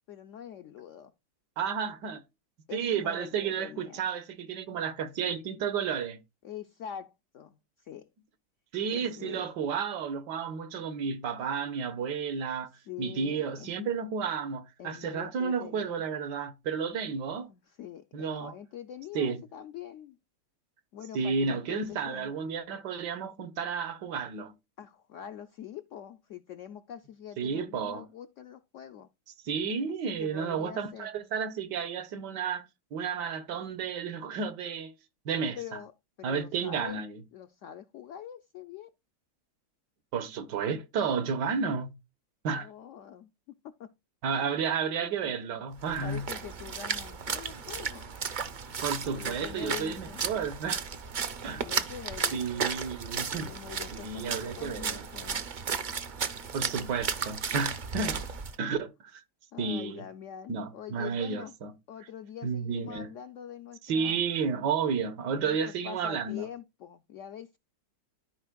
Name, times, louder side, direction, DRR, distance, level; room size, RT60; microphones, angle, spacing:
voice 1, 0.1-1.1 2.7-4.0 6.4-8.1 8.9-9.5 12.7-13.8 14.8-16.0 17.5-20.2 20.9-22.3 24.8-29.1 30.1-31.1 35.5-35.9 36.2-37.0 37.3-38.9 42.5-43.9 44.3-44.6 45.2-45.6 46.0-48.1 49.1-50.2 51.5-52.7 53.3-55.4 59.5-61.5 61.9-64.2 65.3-65.6 65.8-67.6, left 10 dB, 75° left, 0.7 m, -44 dB
voice 2, 1.6-2.2 2.7-6.2 8.7-12.7 13.0-17.5 18.1-18.5 19.1-19.4 21.1-24.5 27.4-28.1 29.4-34.9 35.2-35.8 36.2-37.2 40.1-41.9 42.4-42.7 44.2-46.2 47.5-47.6 48.8-50.8 51.4-51.7 52.3-53.5 53.9-55.0 56.5-58.2 58.6-59.2 59.6-60.0 60.5-61.7 62.4-63.1 63.8-66.5, right 6 dB, 80° right, 1.5 m, -32 dB
Splash splatter, 45.8-58.5, right 6 dB, 60° right, 0.5 m, -34 dB
13.5 x 5.0 x 2.3 m
omnidirectional pair, 1.8 m